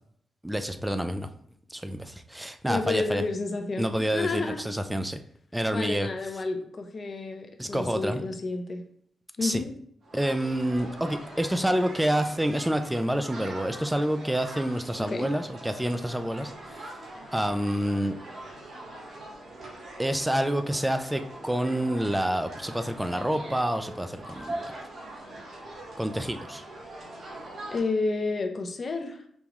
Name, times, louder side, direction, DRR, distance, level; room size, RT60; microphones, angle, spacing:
voice 1, 0.4-1.3 1.7-3.2 3.8-5.2 5.5-6.1 7.6-8.2 9.4-9.6 10.1-16.5 17.3-18.2 20.0-24.7 26.0-26.6, right 1 dB, 10° right, 8 dB, 0.5 m, -28 dB
voice 2, 2.7-4.6 5.7-8.8 9.4-9.7 15.0-15.3 27.7-29.2, left 3 dB, 50° left, 5 dB, 0.7 m, -30 dB
sound 1, 10.0-27.8, right 1 dB, 60° right, 1.5 m, -42 dB
5.3 x 2.3 x 3.0 m, 0.67 s
cardioid pair, 60°, 0 cm